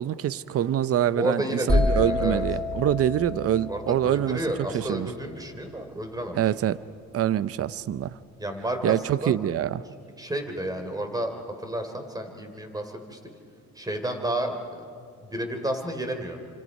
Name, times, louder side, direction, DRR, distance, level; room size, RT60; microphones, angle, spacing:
voice 1, 0.0-4.4 4.7-5.1 6.3-6.8 7.1-8.2 8.8-9.8, right 10 dB, 50° right, 16 dB, 0.6 m, -25 dB
voice 2, 1.1-2.4 3.7-6.4 8.4-9.4 10.2-13.2 13.7-14.8 15.2-16.4, right 1 dB, 10° right, 6 dB, 3.3 m, -31 dB
sound 1, 1.7-5.5, left 2 dB, 5° left, 3.8 m, -28 dB
29.0 x 26.0 x 5.4 m, 2.4 s
cardioid pair, 90°, 30 cm